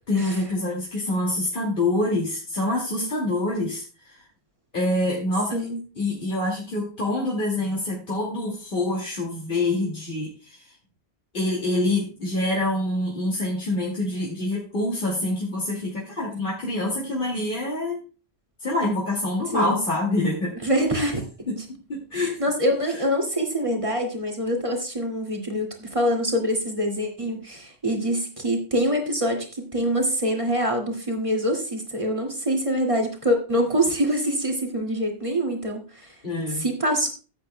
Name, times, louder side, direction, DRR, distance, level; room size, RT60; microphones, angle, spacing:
voice 1, 0.1-4.2 4.7-5.7 6.0-10.7 11.3-18.0 18.6-20.6 21.5-21.6 21.9-22.4 36.2-36.6, left 1 dB, 50° left, -3 dB, 2.5 m, -26 dB
voice 2, 20.6-21.2 22.1-36.1 36.6-37.1, equal, 30° right, 2 dB, 2.3 m, -25 dB
15.0 x 8.5 x 2.2 m, 0.34 s
omnidirectional pair, 1.1 m